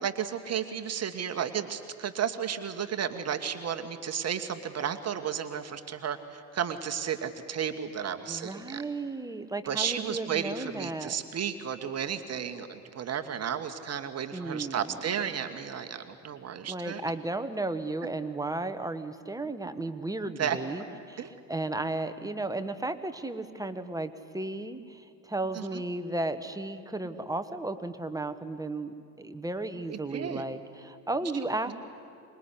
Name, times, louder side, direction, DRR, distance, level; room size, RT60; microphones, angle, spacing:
voice 1, 0.0-8.8 9.7-17.0 20.4-20.6 21.2-21.3 25.5-25.8 29.9-30.4 31.7-31.8, right 8 dB, 30° right, 7 dB, 1.6 m, -33 dB
voice 2, 8.3-11.2 14.3-15.0 16.7-31.7, right 2 dB, 5° right, 9 dB, 1.5 m, -34 dB
26.0 x 21.0 x 9.9 m, 2.4 s
figure-of-eight pair, 70°, 48 cm